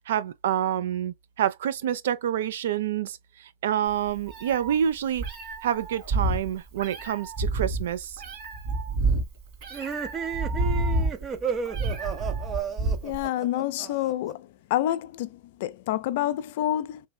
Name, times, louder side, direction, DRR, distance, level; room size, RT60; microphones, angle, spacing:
voice 1, 0.1-5.2 5.6-8.1, right 10 dB, 70° right, 0.5 m, -27 dB
Meow, 3.9-13.3, right 2 dB, 45° right, 2.1 m, -29 dB
sound 1, 9.7-14.3, right 6 dB, 30° right, 0.6 m, -33 dB
voice 2, 13.0-17.0, left 13 dB, 60° left, 0.4 m, -28 dB
3.3 x 3.2 x 2.3 m
hypercardioid pair, 105°, 0 cm